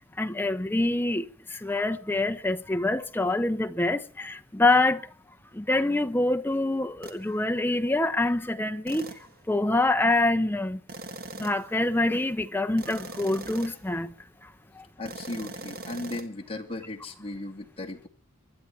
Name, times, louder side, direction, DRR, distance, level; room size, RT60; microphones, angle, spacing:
voice 1, 0.0-5.1 5.5-9.2 9.5-10.8 11.4-14.1 14.4-14.8, left 2 dB, 10° left, 0.9 m, -26 dB
sound 1, 7.0-7.2 8.9-9.3 10.9-11.7 12.8-13.9 15.1-16.3, right 2 dB, 45° right, 1.6 m, -41 dB
voice 2, 15.0-18.1, left 2 dB, 25° left, 2.6 m, -36 dB
24.0 x 11.0 x 4.6 m
head